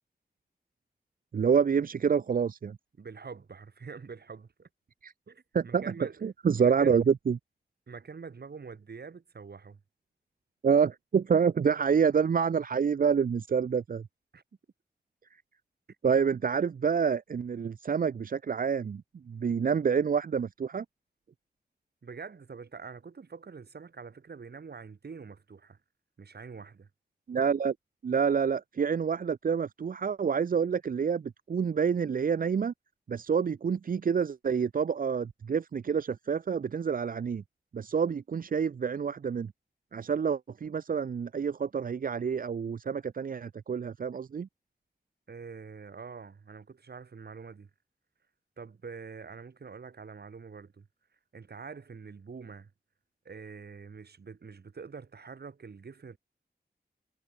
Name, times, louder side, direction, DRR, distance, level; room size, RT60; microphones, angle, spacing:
voice 1, 1.3-2.8 5.0-5.1 5.5-5.9 6.2-7.4 10.6-14.1 16.0-20.8 27.3-27.7 28.0-32.7 33.1-37.4 37.7-39.5 39.9-44.5, right 6 dB, 55° right, 0.5 m, -27 dB
voice 2, 3.0-4.7 5.3-6.2 6.6-7.0 7.9-9.8 14.3-14.4 22.0-25.8 26.2-26.9 45.3-47.7 48.6-50.9 51.3-52.7 53.2-56.2, right 5 dB, 75° right, 3.9 m, -45 dB
wide cardioid pair, 70°, 17 cm